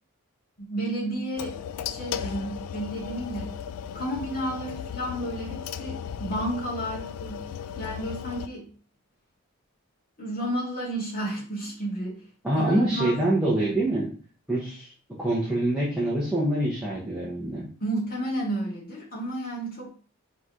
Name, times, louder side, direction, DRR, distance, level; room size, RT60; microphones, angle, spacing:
voice 1, 0.6-1.6 1.8-3.5 3.9-7.4 7.7-8.7 10.2-12.2 12.5-13.2 17.8-19.9, right 1 dB, 40° left, -6 dB, 2.1 m, -32 dB
sound 1, 1.4-8.5, left 8 dB, 85° left, 0.3 m, -36 dB
voice 2, 12.4-14.1 14.5-14.9 15.2-17.7, right 1 dB, 5° right, -8 dB, 0.9 m, -25 dB
4.0 x 3.1 x 3.6 m, 0.41 s
head